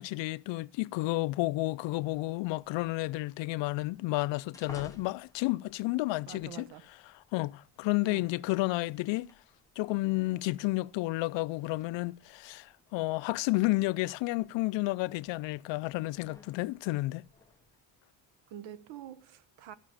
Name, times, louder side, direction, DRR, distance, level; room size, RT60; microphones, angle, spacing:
voice 1, 0.0-6.7 7.3-9.3 9.8-17.2, left 20 dB, 75° left, 0.5 m, -31 dB
sound 1, 2.0-17.8, left 2 dB, 5° left, 0.6 m, -59 dB
voice 2, 6.3-6.9 8.0-8.3 18.5-19.7, right 10 dB, 80° right, 1.0 m, -46 dB
13.5 x 5.9 x 8.6 m
cardioid pair, 175°, 45 cm